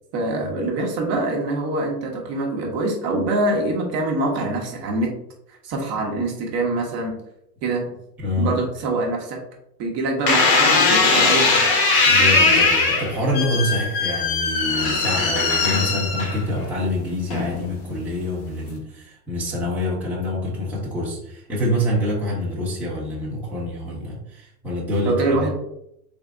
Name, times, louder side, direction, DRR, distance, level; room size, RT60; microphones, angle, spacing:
voice 1, 0.1-5.1 5.5-7.2 7.6-8.0 8.4-9.4 9.8-11.7 25.0-25.5, right 2 dB, 30° right, 0 dB, 0.9 m, -24 dB
voice 2, 8.2-8.6 12.0-25.4, left 1 dB, 5° right, -5 dB, 0.8 m, -26 dB
sound 1, 10.3-16.7 17.3-17.8, left 3 dB, 30° left, 0.9 m, -19 dB
3.6 x 3.1 x 3.7 m, 0.78 s
hypercardioid pair, 125°, 50 cm